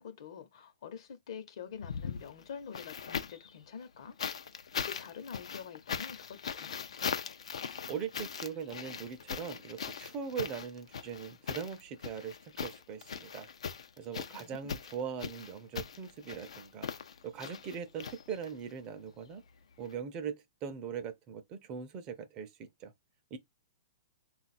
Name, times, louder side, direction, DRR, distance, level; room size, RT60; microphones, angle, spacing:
voice 1, 0.0-4.2 4.8-6.9 14.2-14.7, left 7 dB, 60° left, 0.8 m, -46 dB
sound 1, 1.7-3.5 4.2-18.7 19.8-19.9, left 6 dB, 80° left, 0.5 m, -40 dB
voice 2, 7.9-13.5 14.0-16.9 17.2-19.4 19.8-22.5 22.8-22.9 23.3-23.4, right 7 dB, 30° right, 0.5 m, -40 dB
3.9 x 2.4 x 4.1 m
hypercardioid pair, 145°, 3 cm